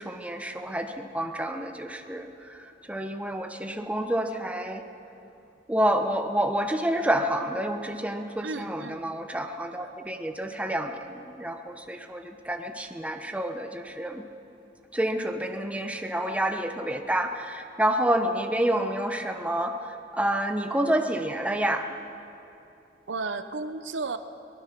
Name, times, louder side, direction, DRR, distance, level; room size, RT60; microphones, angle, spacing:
voice 1, 0.0-4.8 5.7-14.2 14.9-19.7 20.1-21.9, right 1 dB, 10° right, 5 dB, 1.0 m, -28 dB
voice 2, 8.4-9.0 23.1-24.2, right 3 dB, 85° right, 10 dB, 0.9 m, -33 dB
23.0 x 19.0 x 6.1 m, 2.7 s
head